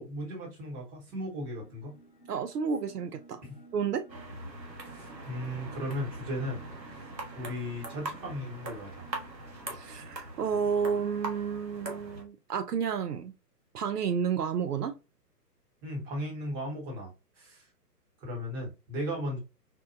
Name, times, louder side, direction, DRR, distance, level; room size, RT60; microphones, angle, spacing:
voice 1, 0.0-1.9 3.4-3.5 4.8-6.6 6.9-7.1 7.4-9.1 15.8-17.1 17.4-17.7 18.2-19.4, equal, 15° right, 0.8 m, -36 dB
sound 1, 1.1-10.3, right 2 dB, 10° left, 0.5 m, -55 dB
voice 2, 2.3-3.4 3.7-4.0 9.7-13.3 13.7-15.0, right 6 dB, 70° right, 0.5 m, -31 dB
sound 2, 4.1-12.2, right 2 dB, 85° right, 1.2 m, -42 dB
4.3 x 2.1 x 2.5 m
figure-of-eight pair, 125°, 49 cm